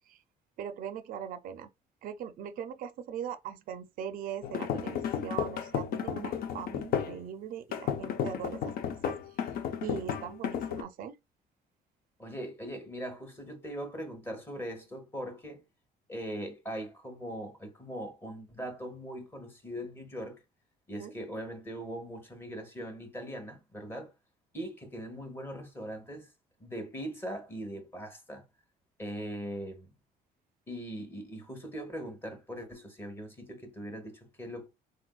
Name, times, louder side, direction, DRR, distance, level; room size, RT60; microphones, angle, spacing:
voice 1, 0.6-1.7 2.0-8.7 9.0-9.5 9.8-11.2 21.0-21.1, right 8 dB, 55° right, 0.4 m, -40 dB
sound 1, 4.4-7.2 7.7-10.8, left 8 dB, 60° left, 0.5 m, -33 dB
voice 2, 12.2-15.6 16.1-20.4 20.9-24.1 24.5-26.3 26.6-28.5 29.0-29.9 30.7-34.7, equal, 15° left, 0.9 m, -40 dB
3.7 x 2.4 x 2.2 m
cardioid pair, 110°, 17 cm